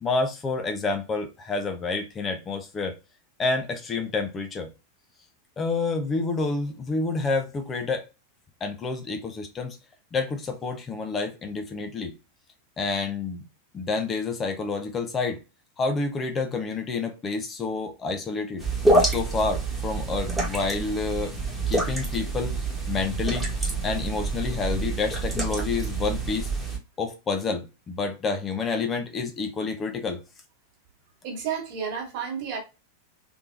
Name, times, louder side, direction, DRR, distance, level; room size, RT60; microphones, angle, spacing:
voice 1, 0.0-2.9 3.4-4.7 5.6-8.1 8.6-9.8 10.1-12.1 12.8-13.4 13.7-15.4 15.8-18.6 19.0-21.4 21.7-23.5 23.8-26.5 27.0-30.2, left 4 dB, 20° left, 0.6 m, -29 dB
sound 1, 18.6-26.8, right 2 dB, ahead, 1.4 m, -27 dB
voice 2, 31.2-32.6, right 7 dB, 45° right, 1.3 m, -31 dB
3.4 x 3.3 x 2.5 m
figure-of-eight pair, 90°, 0 cm